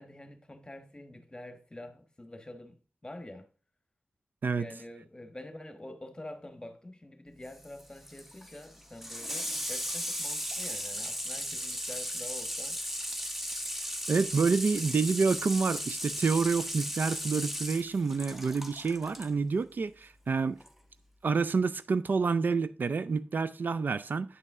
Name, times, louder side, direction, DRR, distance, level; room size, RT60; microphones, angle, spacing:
voice 1, 0.0-3.5 4.5-12.8, left 1 dB, 20° left, 1.2 m, -46 dB
Water tap faucet / Sink (filling or washing), 7.4-19.3 20.6-20.7, equal, 5° right, 0.8 m, -36 dB
voice 2, 14.1-20.6 21.2-24.4, right 4 dB, 60° right, 0.4 m, -28 dB
9.7 x 5.4 x 3.6 m
wide cardioid pair, 75°, 4 cm